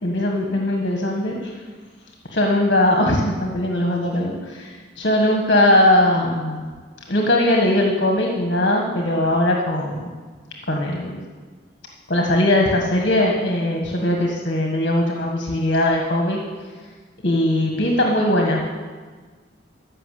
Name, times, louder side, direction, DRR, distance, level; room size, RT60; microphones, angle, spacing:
voice 1, 0.0-1.5 2.3-6.6 7.1-10.1 10.7-11.2 12.1-16.4 17.2-18.6, left 1 dB, 55° left, 0 dB, 1.6 m, -20 dB
14.5 x 5.9 x 8.2 m, 1.5 s
head